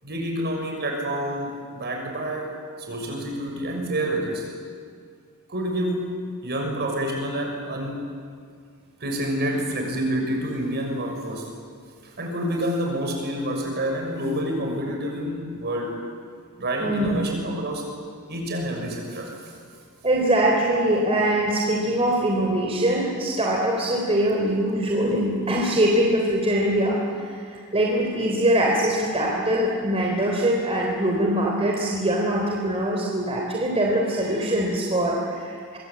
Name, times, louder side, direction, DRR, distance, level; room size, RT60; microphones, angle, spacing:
voice 1, 0.0-4.5 5.5-8.0 9.0-11.5 12.0-15.9 16.6-17.9 18.3-19.5, equal, 50° right, 2 dB, 6.4 m, -28 dB
voice 2, 16.8-17.3 20.0-35.8, right 1 dB, 25° right, -2 dB, 3.7 m, -23 dB
26.5 x 23.5 x 8.7 m, 2.1 s
head